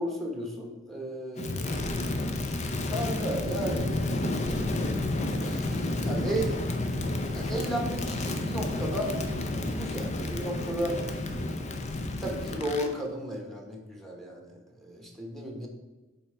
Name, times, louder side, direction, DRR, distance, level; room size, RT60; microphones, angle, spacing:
voice 1, 0.0-2.2 2.9-3.9 5.3-6.6 7.3-9.2 9.5-11.0 12.1-15.7, right 1 dB, ahead, 0 dB, 1.2 m, -34 dB
Crackle, 1.4-12.9, left 2 dB, 35° left, 0.6 m, -31 dB
5.5 x 4.3 x 5.5 m, 1.2 s
head